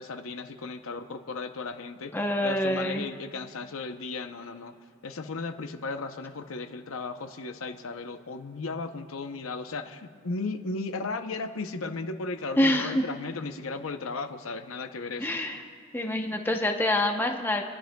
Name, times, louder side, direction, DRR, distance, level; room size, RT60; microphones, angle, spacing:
voice 1, 0.0-2.1 2.4-4.7 5.0-15.4, left 3 dB, 85° left, 8 dB, 0.7 m, -35 dB
voice 2, 2.1-3.1 12.6-13.0 15.2-15.6 15.9-17.6, left 1 dB, 10° left, 3 dB, 0.7 m, -26 dB
30.0 x 11.5 x 2.2 m, 2.1 s
head